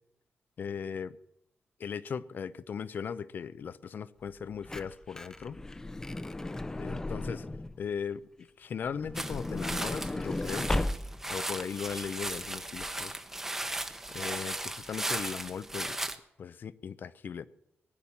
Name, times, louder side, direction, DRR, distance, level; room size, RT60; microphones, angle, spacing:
voice 1, 0.6-1.2 1.8-5.6 6.8-7.5 7.8-10.7 11.3-13.2 14.1-16.1 16.4-17.5, left 7 dB, 55° left, 17 dB, 0.6 m, -38 dB
Truck / Door, 4.3-7.8 8.8-11.4 12.1-12.2 12.4-12.5, left 2 dB, 15° left, 0.6 m, -35 dB
sound 1, 9.2-16.2, right 1 dB, 10° right, 1.0 m, -37 dB
19.0 x 10.5 x 7.1 m, 0.78 s
wide cardioid pair, 165°, 4 cm